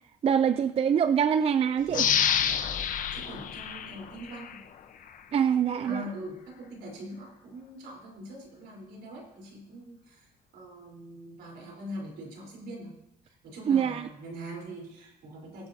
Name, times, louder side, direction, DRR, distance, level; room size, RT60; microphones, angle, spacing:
voice 1, 0.2-2.1 5.3-6.0 13.7-14.1, right 8 dB, 35° right, 11 dB, 0.4 m, -24 dB
sound 1, 1.9-4.6 5.1-5.2, left 8 dB, 50° left, 0.9 m, -28 dB
voice 2, 3.1-4.6 5.8-13.0 13.2-15.7, equal, 70° right, -1 dB, 3.9 m, -42 dB
22.0 x 8.3 x 2.7 m, 0.85 s
cardioid pair, 110°, 17 cm